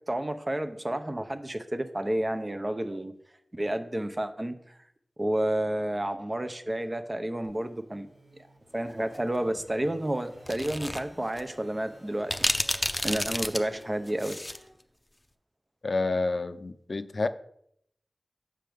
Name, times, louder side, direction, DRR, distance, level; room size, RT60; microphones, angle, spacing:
voice 1, 0.1-3.1 3.5-4.7 5.2-8.1 8.7-14.4, right 1 dB, 30° right, 9 dB, 0.7 m, -31 dB
sound 1, 7.4-14.7, equal, 80° right, 3.0 m, -54 dB
sound 2, 10.5-11.0 11.4-11.5 12.3-14.6, left 1 dB, 25° left, 0.6 m, -30 dB
voice 2, 15.8-17.3, left 3 dB, 65° left, 10 dB, 0.4 m, -29 dB
7.5 x 6.1 x 3.4 m, 0.71 s
wide cardioid pair, 55°, 0 cm